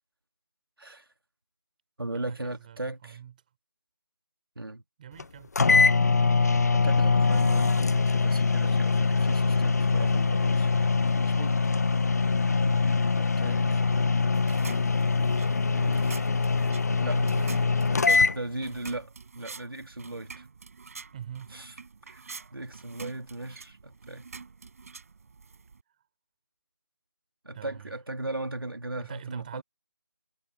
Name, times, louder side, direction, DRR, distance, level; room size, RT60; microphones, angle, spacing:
voice 1, 0.8-1.1 2.0-3.2 4.6-4.8 6.7-10.7 11.2-11.6 13.2-13.8 15.7-16.0 17.0-17.2 17.9-20.5 21.5-21.7 22.0-24.3 27.4-29.6, right 2 dB, 85° right, 2.3 m, -37 dB
voice 2, 2.1-3.3 5.0-5.6 12.5-12.8 16.9-18.3 21.1-21.6 27.5-27.9 29.0-29.6, right 9 dB, 20° right, 3.3 m, -44 dB
sound 1, 5.2-5.3 5.6-18.4, left 4 dB, 45° left, 0.4 m, -23 dB
sound 2, 14.3-25.8, right 5 dB, 40° right, 3.9 m, -46 dB
figure-of-eight pair, 160°, 12 cm